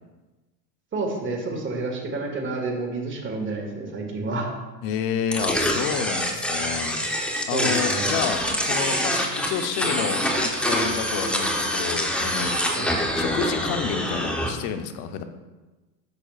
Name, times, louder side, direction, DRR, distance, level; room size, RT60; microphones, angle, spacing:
voice 1, 0.9-4.5 7.5-8.3 12.7-12.9, right 3 dB, 25° right, 1 dB, 1.8 m, -29 dB
voice 2, 4.8-7.0 7.5-12.6 13.2-15.2, left 8 dB, 50° left, 8 dB, 0.9 m, -30 dB
sound 1, 5.3-14.5, equal, ahead, 0.9 m, -25 dB
10.5 x 6.0 x 2.4 m, 1.2 s
hypercardioid pair, 95°, 49 cm